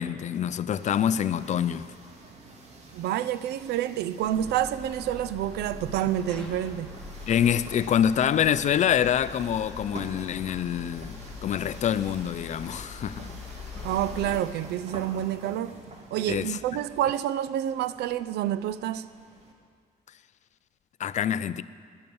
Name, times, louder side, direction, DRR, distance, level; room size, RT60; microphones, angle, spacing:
voice 1, 0.0-1.9 7.3-13.3 16.3-16.6 21.0-21.6, left 9 dB, 45° left, 0.5 m, -26 dB
sound 1, 0.7-19.5, right 2 dB, 40° right, 2.3 m, -47 dB
voice 2, 2.9-6.9 13.8-15.8 16.1-19.1, right 11 dB, 75° right, 0.6 m, -28 dB
sound 2, 4.2-14.4, left 4 dB, 5° left, 2.6 m, -42 dB
16.5 x 11.0 x 7.1 m
cardioid pair, 110°, 17 cm